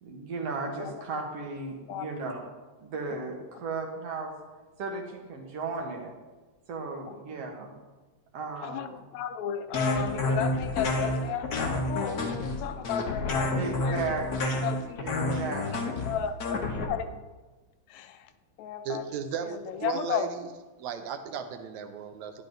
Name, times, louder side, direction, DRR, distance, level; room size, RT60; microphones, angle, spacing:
voice 1, 0.0-2.4 2.8-4.3 4.8-6.1 6.7-7.7 8.3-9.0 13.5-14.7 15.0-15.9, right 3 dB, 60° right, 1 dB, 2.4 m, -35 dB
voice 2, 1.9-2.3 7.1-7.2 8.6-14.0 14.6-15.0 15.3-17.2 17.9-18.3 18.6-20.3, left 8 dB, 80° left, 10 dB, 1.8 m, -34 dB
sound 1, 9.7-16.8, left 2 dB, 50° left, 1.2 m, -30 dB
voice 3, 18.8-20.5 20.8-22.4, right 7 dB, 80° right, 7 dB, 2.1 m, -35 dB
12.0 x 10.0 x 3.9 m, 1.2 s
omnidirectional pair, 3.3 m